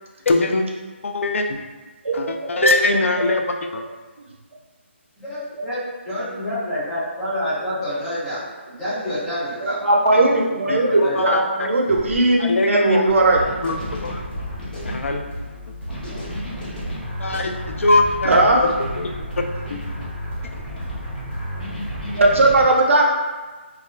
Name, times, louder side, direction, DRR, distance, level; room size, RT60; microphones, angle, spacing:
voice 1, 0.3-0.7 1.0-1.7 2.1-3.8 10.7-11.7 12.4-13.1 13.6-14.2 14.8-15.2 17.2-19.8, left 2 dB, 85° left, 5 dB, 0.3 m, -22 dB
voice 2, 2.0-3.3 9.6-13.4 18.3-18.6 22.1-23.2, right 2 dB, 75° right, -1 dB, 0.5 m, -18 dB
voice 3, 5.2-8.4 8.7-9.8 10.1-11.4, left 1 dB, ahead, -16 dB, 0.3 m, -28 dB
sound 1, 11.7-12.2 13.3-15.2 15.9-22.6, equal, 40° left, 0.8 m, -33 dB
sound 2, 13.1-22.3, left 1 dB, 65° left, 1.2 m, -35 dB
2.3 x 2.2 x 3.1 m, 1.3 s
hypercardioid pair, 175°, 7 cm